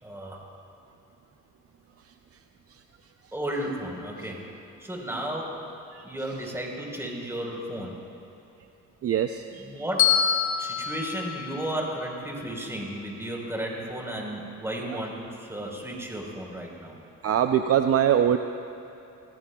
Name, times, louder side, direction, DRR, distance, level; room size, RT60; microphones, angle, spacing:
voice 1, 0.0-0.4 3.3-4.4 4.8-5.7 6.0-8.0 9.6-10.1 10.6-17.0, right 1 dB, 10° right, -2 dB, 4.0 m, -33 dB
voice 2, 9.0-9.4 17.2-18.4, right 9 dB, 50° right, 7 dB, 0.5 m, -22 dB
Bell, 10.0-12.2, left 9 dB, 85° left, 1.9 m, -26 dB
26.0 x 16.5 x 2.3 m, 2.8 s
cardioid pair, 90°, 30 cm